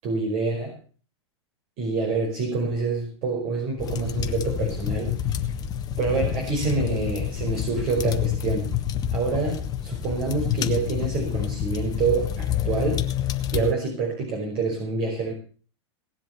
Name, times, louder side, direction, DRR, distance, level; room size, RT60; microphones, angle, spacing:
voice 1, 0.0-0.8 1.8-5.4 6.0-8.7 9.1-13.1 13.5-15.3, right 4 dB, 40° right, -1 dB, 5.2 m, -27 dB
sound 1, 3.8-13.7, left 10 dB, 25° left, 1.4 m, -28 dB
18.5 x 7.8 x 6.8 m, 0.40 s
hypercardioid pair, 130°, 15 cm